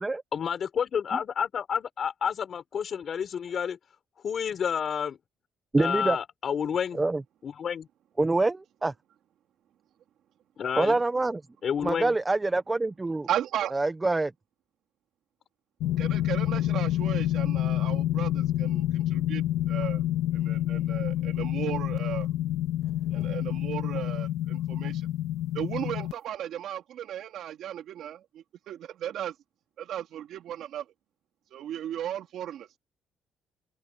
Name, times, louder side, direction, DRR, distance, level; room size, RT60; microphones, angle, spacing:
voice 1, 0.3-3.8 4.2-5.2 5.8-7.0 7.4-7.9 10.6-11.0 11.6-12.1, left 7 dB, 40° left, 5.7 m, -30 dB
voice 2, 5.7-6.2 6.9-7.2 8.2-8.9 10.8-11.4 11.8-13.3 13.7-14.3, right 2 dB, 15° right, 0.6 m, -25 dB
voice 3, 13.3-13.7 16.0-20.0 20.3-22.3 23.1-25.1 25.5-29.3 29.8-30.8 31.5-32.7, right 11 dB, 60° right, 3.3 m, -35 dB
sound 1, 15.8-26.1, left 13 dB, 85° left, 2.2 m, -28 dB
open air
cardioid pair, 155°, 0 cm